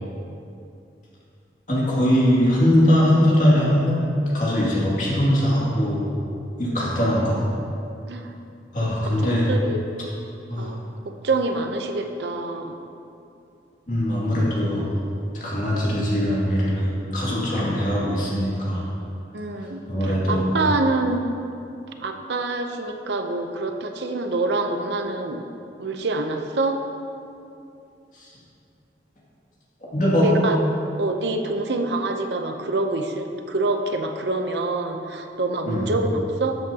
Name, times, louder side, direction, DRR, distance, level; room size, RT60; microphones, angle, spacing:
voice 1, 1.7-4.0 4.3-6.1 6.6-7.4 8.7-9.5 10.5-10.7 13.9-14.9 15.3-18.9 19.9-20.5 28.2-28.3 29.9-30.3 35.7-35.9, equal, 45° left, -6 dB, 2.3 m, -21 dB
voice 2, 9.2-9.9 10.6-10.8 11.1-12.7 19.3-21.2 22.0-25.4 25.8-26.8 30.2-30.6 31.0-36.6, right 2 dB, 75° right, 5 dB, 0.7 m, -26 dB
13.0 x 7.9 x 2.9 m, 2.6 s
head